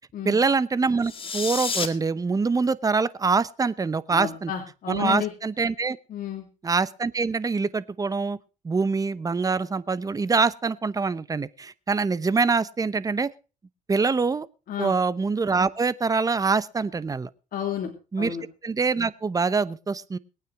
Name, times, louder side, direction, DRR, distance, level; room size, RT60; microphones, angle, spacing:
voice 1, 0.2-4.5 4.9-6.0 6.6-8.4 8.6-13.3 13.9-14.5 14.8-17.3 18.1-18.4 18.6-20.2, right 4 dB, 20° right, 17 dB, 0.9 m, -24 dB
sound 1, 1.0-1.9, left 5 dB, 30° left, 2.1 m, -29 dB
voice 2, 4.1-5.3 6.1-6.5 14.7-14.9 17.5-17.9 18.2-18.4, left 9 dB, 55° left, 1 dB, 2.9 m, -31 dB
21.0 x 9.3 x 4.7 m, 0.33 s
cardioid pair, 110°, 17 cm